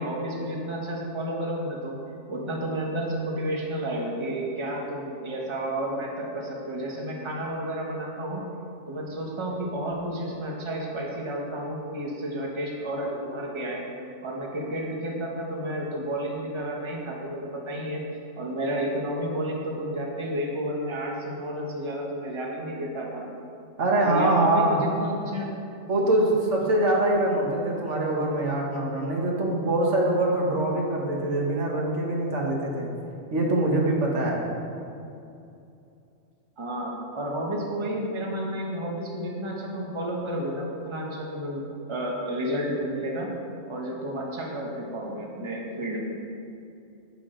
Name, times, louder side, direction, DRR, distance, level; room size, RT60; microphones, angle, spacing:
voice 1, 0.0-2.0 2.3-8.4 8.9-13.8 14.2-18.0 18.4-23.3 24.0-25.5 36.6-41.6 41.9-43.3 43.7-46.2, right 1 dB, 25° right, -1 dB, 1.2 m, -31 dB
voice 2, 23.8-24.8 25.9-32.9 33.3-34.4, right 1 dB, 70° right, -2 dB, 1.6 m, -24 dB
10.5 x 8.5 x 3.8 m, 2.6 s
omnidirectional pair, 1.3 m